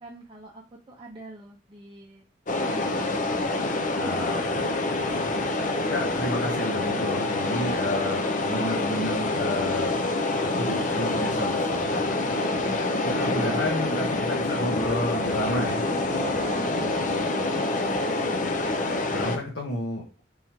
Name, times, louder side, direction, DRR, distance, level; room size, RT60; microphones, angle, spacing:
voice 1, 0.0-2.2 3.0-4.1 5.0-5.3 12.3-14.3 16.1-18.4, right 2 dB, 25° right, -3 dB, 0.6 m, -42 dB
sound 1, 2.5-19.4, left 2 dB, 40° left, 0.5 m, -26 dB
voice 2, 4.0-4.7 5.9-10.0 10.6-12.4 13.0-15.9 19.1-20.0, left 1 dB, 60° left, -3 dB, 1.0 m, -31 dB
3.7 x 3.0 x 4.3 m, 0.33 s
head